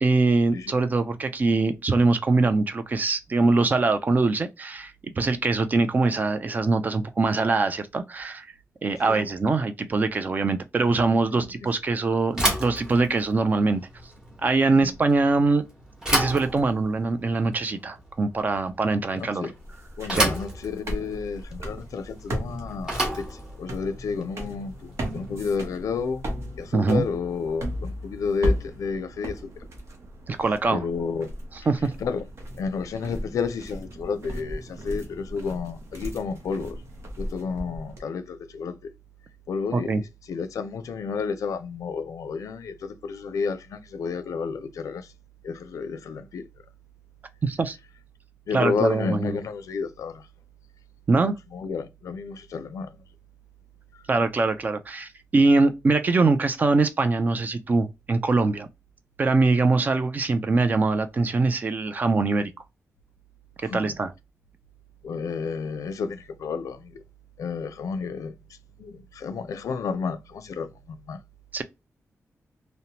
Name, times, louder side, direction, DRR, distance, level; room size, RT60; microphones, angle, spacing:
voice 1, 0.0-8.5 8.8-13.8 14.4-15.6 16.1-19.4 20.1-20.3 26.7-27.0 30.3-30.9 31.7-31.9 39.7-40.0 47.4-47.8 48.5-49.4 51.1-51.4 54.1-58.7 59.2-62.5 63.6-64.1 71.5-71.6, right 3 dB, 30° right, 0.3 m, -23 dB
voice 2, 11.3-11.7 14.7-14.9 19.1-19.5 20.0-26.2 26.6-29.6 30.7-31.3 32.0-32.2 32.6-36.8 37.2-38.9 39.5-45.1 45.4-46.5 48.5-50.3 51.5-53.0 53.9-54.0 63.6-64.0 65.0-67.0 67.4-68.4 68.8-71.2, left 5 dB, 85° left, 0.4 m, -31 dB
Bicycle / Thump thud, 12.3-25.4, right 1 dB, 15° right, 0.9 m, -31 dB
sound 1, 19.6-38.0, equal, 55° right, 0.8 m, -36 dB
2.7 x 2.0 x 2.8 m
wide cardioid pair, 175°, 5 cm